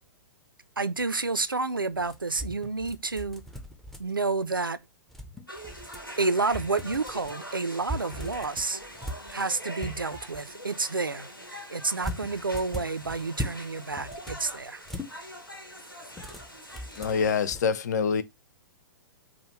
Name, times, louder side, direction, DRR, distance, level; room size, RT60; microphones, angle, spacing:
voice 1, 0.8-3.4 4.0-4.8 6.2-8.8 9.3-11.3 11.7-14.8, right 3 dB, 85° right, 0.4 m, -29 dB
sound 1, 2.0-4.3 5.1-6.1 6.5-7.4 7.8-10.5 12.0-13.6 13.9-15.1 16.1-17.6, equal, ahead, 0.5 m, -39 dB
sound 2, 5.5-17.5, equal, 90° left, 1.1 m, -44 dB
voice 2, 17.0-18.2, left 6 dB, 55° left, 0.4 m, -25 dB
4.7 x 2.1 x 3.0 m
figure-of-eight pair, 110°, 11 cm